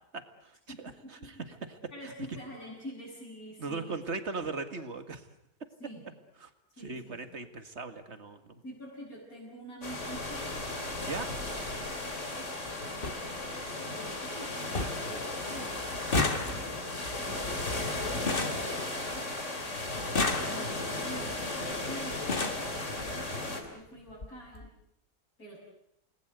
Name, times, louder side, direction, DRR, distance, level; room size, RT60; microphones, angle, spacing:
voice 1, 0.1-1.3 2.0-2.1 3.6-5.3 6.4-6.5 6.8-8.6 11.0-11.3, right 3 dB, 45° right, 9 dB, 2.2 m, -39 dB
voice 2, 0.7-1.5 1.9-4.0 5.8-6.2 6.8-7.4 8.6-10.6 11.2-19.3 20.4-24.7 25.4-25.6, equal, 70° left, -7 dB, 7.2 m, -47 dB
sound 1, 9.8-23.6, left 2 dB, 50° left, 3.7 m, -35 dB
sound 2, 10.9-11.1 12.3-12.4 12.7-12.8 13.0-13.2 13.7-14.2 14.4-14.5 14.7-15.1 15.4-19.4 20.0-20.9 21.7-21.8 22.1-22.7 23.6-23.7 24.1-24.3 24.5-24.7, left 3 dB, 35° left, 2.1 m, -33 dB
29.0 x 20.0 x 8.1 m, 0.79 s
omnidirectional pair, 1.6 m